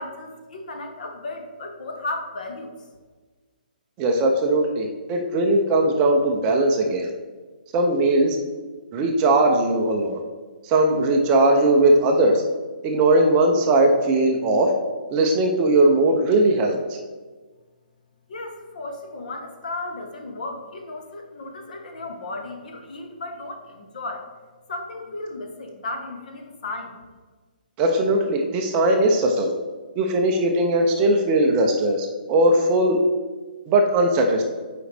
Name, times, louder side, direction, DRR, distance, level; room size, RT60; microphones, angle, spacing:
voice 1, 0.0-2.7 18.3-24.3 24.7-26.9, left 2 dB, 55° left, 4 dB, 1.1 m, -34 dB
voice 2, 4.0-7.1 7.7-8.4 8.9-10.2 10.6-12.4 12.8-14.7 15.1-16.8 27.8-29.5 30.0-33.0 33.7-34.4, right 1 dB, 15° right, 2 dB, 0.4 m, -19 dB
7.7 x 4.9 x 3.3 m, 1.4 s
hypercardioid pair, 170°, 5 cm